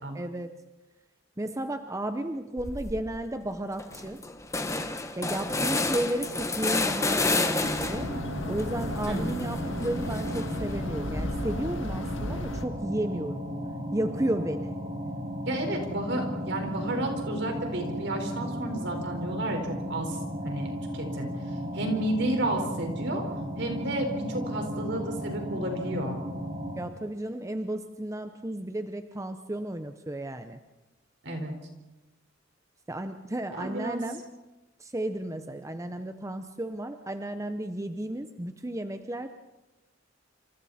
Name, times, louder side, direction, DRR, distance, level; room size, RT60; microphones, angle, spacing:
voice 1, 0.1-0.5 1.4-4.2 5.2-8.1 8.5-13.5 13.9-14.8 26.8-30.6 32.9-34.2 34.8-39.4, right 1 dB, 15° right, 8 dB, 0.8 m, -33 dB
sound 1, 2.6-3.0 3.5-3.6 3.8-8.2 8.6-10.7, left 3 dB, 15° left, 1.2 m, -30 dB
sound 2, 7.6-12.7, left 1 dB, 70° left, 1.8 m, -35 dB
sound 3, 7.8-26.8, equal, 35° right, 6.3 m, -35 dB
voice 2, 9.1-9.4 15.5-19.6 19.9-20.2 20.4-21.3 21.7-23.2 23.6-26.2 31.2-31.5 33.6-34.0, right 1 dB, 60° right, 3 dB, 4.6 m, -31 dB
27.5 x 27.0 x 4.3 m, 1.1 s
head